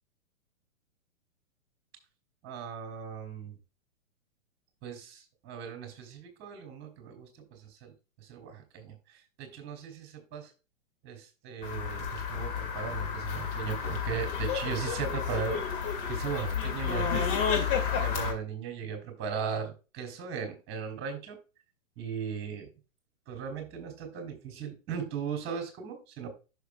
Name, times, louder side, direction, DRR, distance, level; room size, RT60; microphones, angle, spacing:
voice 1, 2.4-3.5 4.8-7.9 8.2-8.9 9.4-10.5 11.0-15.8 16.1-17.4 18.0-21.4 22.0-22.7 23.3-26.3, right 7 dB, 25° right, 4 dB, 2.7 m, -37 dB
sound 1, 11.6-18.3, left 7 dB, 40° left, 2.1 m, -31 dB
11.5 x 6.1 x 2.2 m, 0.31 s
figure-of-eight pair, 115°, 40 cm